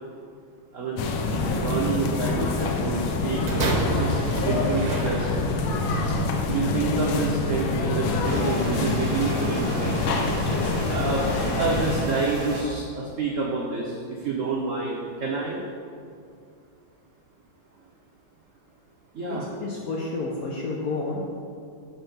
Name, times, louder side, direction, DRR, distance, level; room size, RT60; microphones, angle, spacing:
voice 1, 0.7-5.4 6.1-6.2 6.5-9.9 10.8-11.2 11.6-15.6 19.1-19.5, right 4 dB, 80° right, -3 dB, 0.7 m, -28 dB
sound 1, 1.0-12.0, left 3 dB, 90° left, 1.5 m, -26 dB
sound 2, 3.5-5.7 6.5-6.6, right 2 dB, 55° right, 1.3 m, -29 dB
sound 3, 8.2-12.6, equal, 35° right, 0.9 m, -34 dB
voice 2, 19.3-21.2, left 3 dB, 70° left, -2 dB, 0.8 m, -30 dB
5.3 x 4.3 x 5.7 m, 2.3 s
omnidirectional pair, 2.2 m